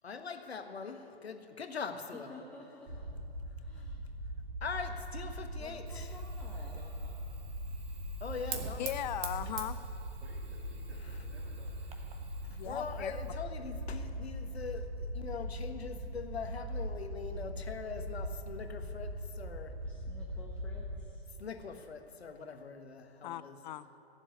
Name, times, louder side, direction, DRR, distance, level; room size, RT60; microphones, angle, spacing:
voice 1, 0.0-2.3 4.6-6.1 8.2-8.9 12.6-14.9 15.1-19.7 21.4-23.6, left 5 dB, 80° left, 6 dB, 1.5 m, -42 dB
voice 2, 2.1-3.1 3.6-4.1 5.6-6.8 19.8-21.3, left 2 dB, 5° left, -5 dB, 1.3 m, -52 dB
sound 1, 2.9-21.1, equal, 45° right, 3.6 m, -41 dB
Fire, 5.9-13.3, right 6 dB, 20° right, 1.1 m, -48 dB
voice 3, 6.7-7.2 10.2-11.8 12.2-12.7 15.4-15.5, right 1 dB, 85° right, -5 dB, 3.8 m, -58 dB
voice 4, 8.8-9.8 12.5-13.2 23.2-23.9, left 12 dB, 45° left, 14 dB, 0.7 m, -38 dB
15.5 x 7.5 x 9.5 m, 2.8 s
figure-of-eight pair, 125°, 31 cm